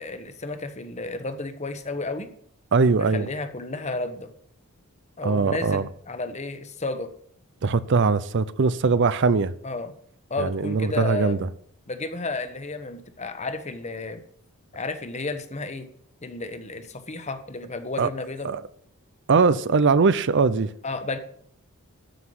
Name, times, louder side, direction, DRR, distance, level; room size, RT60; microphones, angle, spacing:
voice 1, 0.0-2.3 3.0-4.3 5.2-7.1 9.6-9.9 10.3-11.4 11.9-14.2 14.7-15.9 16.2-18.5 20.8-21.2, left 3 dB, 30° left, 1.1 m, -32 dB
voice 2, 2.7-3.3 5.2-5.9 7.6-9.5 10.4-11.4 18.0-18.1 18.4-18.6 19.3-20.7, right 4 dB, 55° right, 0.5 m, -21 dB
13.5 x 5.8 x 7.9 m
head